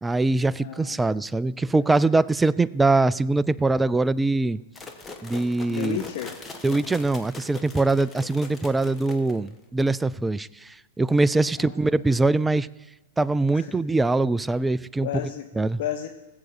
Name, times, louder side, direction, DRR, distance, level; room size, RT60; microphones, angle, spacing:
voice 1, 0.0-4.6 5.2-6.0 6.6-12.7 13.2-15.1 15.6-15.8, right 2 dB, 10° right, 17 dB, 0.3 m, -23 dB
voice 2, 0.6-1.0 5.7-6.3 6.7-6.9 11.7-12.0 13.5-13.7 15.0-15.5 15.8-16.1, left 11 dB, 60° left, 7 dB, 0.7 m, -32 dB
sound 1, 4.8-9.6, left 3 dB, 20° left, 1.4 m, -41 dB
19.5 x 7.8 x 4.3 m, 1.1 s
hypercardioid pair, 100°, 0 cm